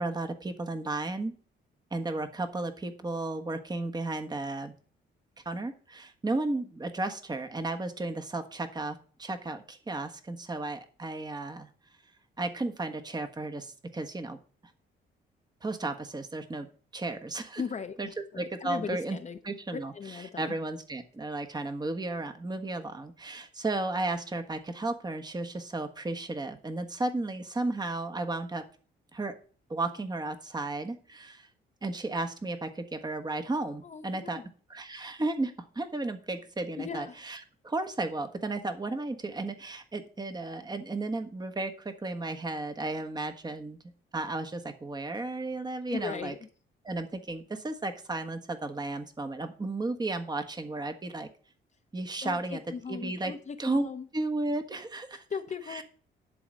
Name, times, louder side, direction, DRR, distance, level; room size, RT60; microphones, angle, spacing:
voice 1, 0.0-1.3 1.9-4.7 5.4-11.7 12.4-14.4 15.6-16.7 16.9-17.6 18.0-18.1 18.4-19.2 19.4-19.9 20.4-28.6 29.1-29.3 29.7-31.5 31.8-34.4 34.7-37.4 37.6-43.8 44.1-46.3 46.8-51.3 51.9-52.6 52.9-53.3 53.6-53.9 54.1-55.2 55.7-55.8, right 2 dB, 20° right, 6 dB, 1.4 m, -34 dB
voice 2, 17.6-19.4 19.7-20.6 33.8-34.5 36.8-37.2 45.9-46.5 52.2-54.1 55.3-55.8, left 6 dB, 35° left, 6 dB, 0.9 m, -38 dB
11.0 x 4.0 x 7.7 m, 0.42 s
cardioid pair, 90°, 20 cm